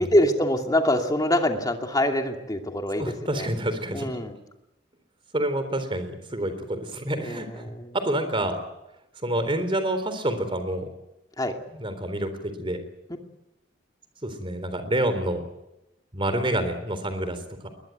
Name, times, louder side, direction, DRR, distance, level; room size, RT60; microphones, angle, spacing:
voice 1, 0.0-3.5 3.9-4.3 7.2-7.9 11.4-11.6, left 1 dB, 20° left, 3 dB, 2.6 m, -25 dB
voice 2, 3.0-4.1 5.3-7.6 7.9-8.6 9.2-10.9 11.7-12.8 14.2-15.4 16.1-17.4 17.6-17.7, right 1 dB, 25° right, 10 dB, 3.8 m, -28 dB
21.5 x 20.5 x 9.3 m, 0.91 s
head